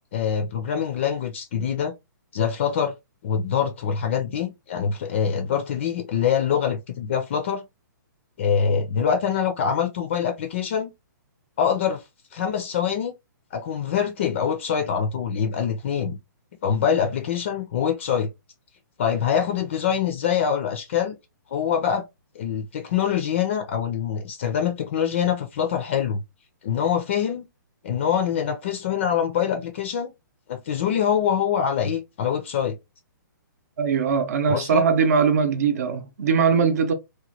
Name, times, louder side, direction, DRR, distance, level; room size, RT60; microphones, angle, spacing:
voice 1, 0.1-1.9 2.3-2.9 3.2-7.6 8.4-10.9 11.6-12.0 12.3-13.1 13.5-16.2 16.6-18.3 19.0-21.2 21.5-22.0 22.3-26.2 26.6-27.4 27.8-30.1 30.5-32.7 34.5-34.8, left 8 dB, 35° left, 0.4 m, -24 dB
voice 2, 33.8-36.9, right 6 dB, 50° right, 0.7 m, -21 dB
2.9 x 2.2 x 2.8 m
hypercardioid pair, 165°, 11 cm